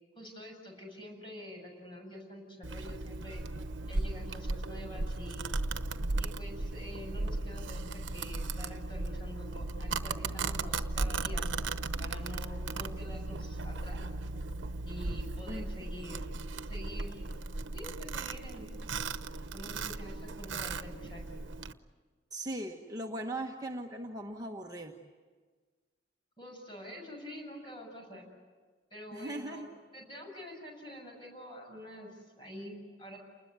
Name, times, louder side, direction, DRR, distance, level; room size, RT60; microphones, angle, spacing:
voice 1, 0.1-3.4 3.8-5.6 6.2-11.6 12.0-14.0 14.8-16.3 16.6-17.2 17.7-18.7 19.5-21.4 26.4-28.3 28.9-29.7 29.9-33.2, left 1 dB, 25° left, 0 dB, 7.5 m, -47 dB
Domestic sounds home sounds, 2.6-21.7, right 3 dB, 85° right, 1.0 m, -36 dB
voice 2, 15.5-15.8 22.3-24.9 29.1-29.7, right 1 dB, 20° right, 1 dB, 1.3 m, -39 dB
29.5 x 20.5 x 9.5 m, 1.5 s
head